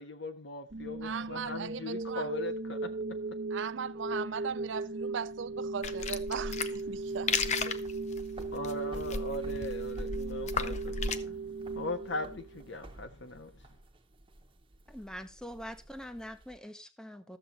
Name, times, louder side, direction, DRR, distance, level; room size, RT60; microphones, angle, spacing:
voice 1, 0.0-2.9 7.7-7.8 8.5-11.4 11.7-13.5, left 2 dB, 65° left, 1.3 m, -39 dB
sound 1, 0.7-12.7, right 3 dB, 55° right, 0.9 m, -37 dB
voice 2, 1.0-2.3 3.5-7.3, right 7 dB, 70° right, 0.5 m, -38 dB
sound 2, 5.8-11.2, left 5 dB, 35° left, 0.6 m, -35 dB
sound 3, 6.7-16.6, right 1 dB, 25° right, 1.1 m, -53 dB
voice 3, 14.9-17.4, equal, 5° left, 0.8 m, -44 dB
12.5 x 7.5 x 3.9 m
head